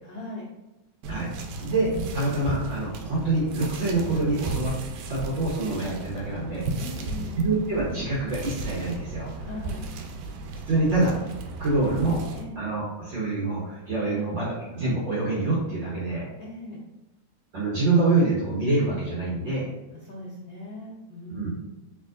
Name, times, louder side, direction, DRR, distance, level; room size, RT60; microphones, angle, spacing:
voice 1, 0.0-0.4 6.8-7.3 9.4-9.8 12.3-12.6 14.0-14.2 16.4-16.8 20.0-21.7, left 2 dB, 85° left, -6 dB, 1.0 m, -39 dB
sound 1, 1.0-12.4, right 3 dB, 80° right, 2.0 m, -35 dB
voice 2, 1.6-4.7 5.1-6.7 7.4-9.3 10.7-11.1 11.6-12.2 12.6-16.3 17.5-19.7 21.3-21.5, right 2 dB, 60° right, -6 dB, 1.3 m, -26 dB
5.2 x 3.6 x 2.5 m, 0.99 s
omnidirectional pair, 3.4 m